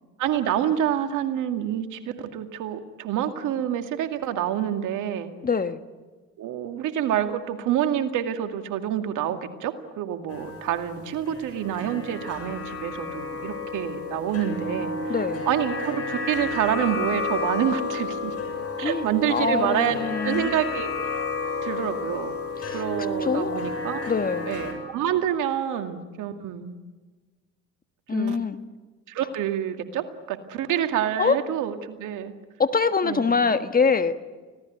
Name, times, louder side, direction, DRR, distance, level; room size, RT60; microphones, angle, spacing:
voice 1, 0.2-5.3 6.4-15.1 15.5-18.3 18.8-21.3 21.6-22.4 22.7-24.1 24.5-26.8 28.1-28.4 29.1-32.3 33.0-33.4, right 10 dB, 65° right, 6 dB, 2.3 m, -27 dB
voice 2, 5.4-5.8 15.1-15.4 18.8-20.5 22.6-22.8 23.2-23.6 24.1-24.5 28.1-28.6 31.2-31.4 32.6-34.2, left 5 dB, 25° left, 9 dB, 1.5 m, -24 dB
sound 1, 10.3-24.7, left 3 dB, 45° left, 7.7 m, -31 dB
25.5 x 18.0 x 9.3 m, 1.3 s
hypercardioid pair, 70°, 33 cm